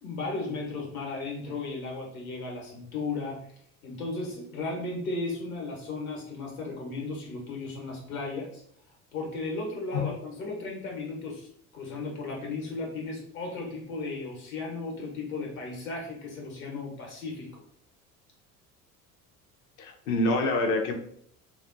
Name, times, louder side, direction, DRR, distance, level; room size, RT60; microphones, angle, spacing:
voice 1, 0.0-3.5 3.8-8.6 9.1-17.6, left 3 dB, 70° left, -1 dB, 1.2 m, -35 dB
voice 2, 19.8-20.9, left 2 dB, 50° left, 4 dB, 0.6 m, -26 dB
4.2 x 2.1 x 2.5 m, 0.67 s
figure-of-eight pair, 60°, 44 cm